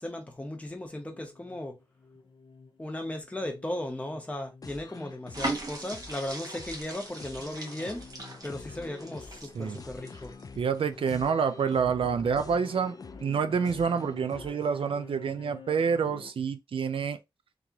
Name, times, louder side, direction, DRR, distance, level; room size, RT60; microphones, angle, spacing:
voice 1, 0.0-1.8 2.8-8.0 8.4-10.3 11.1-11.2, left 1 dB, 15° left, 0.9 m, -36 dB
sound 1, 0.7-16.3, left 5 dB, 75° left, 1.0 m, -50 dB
sound 2, 4.6-14.9, left 4 dB, 45° left, 0.4 m, -48 dB
sound 3, 5.3-10.7 11.1-11.3, right 2 dB, 40° right, 1.2 m, -39 dB
voice 2, 10.6-17.2, right 6 dB, 85° right, 0.5 m, -28 dB
3.7 x 3.1 x 2.9 m
wide cardioid pair, 120°, 9 cm